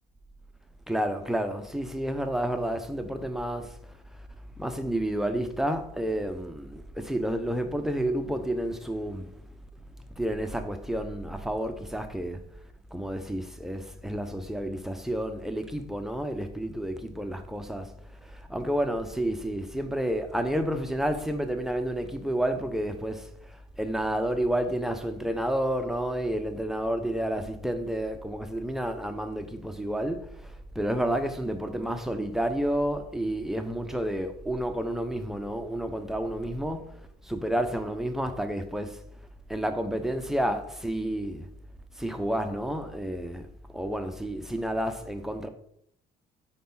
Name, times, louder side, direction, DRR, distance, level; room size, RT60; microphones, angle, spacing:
voice 1, 0.9-3.8 4.6-9.3 10.2-12.4 12.9-17.9 18.2-39.0 39.5-41.5 42.0-45.5, right 1 dB, ahead, 0.6 m, -30 dB
4.3 x 4.2 x 5.4 m
cardioid pair, 110°, 17 cm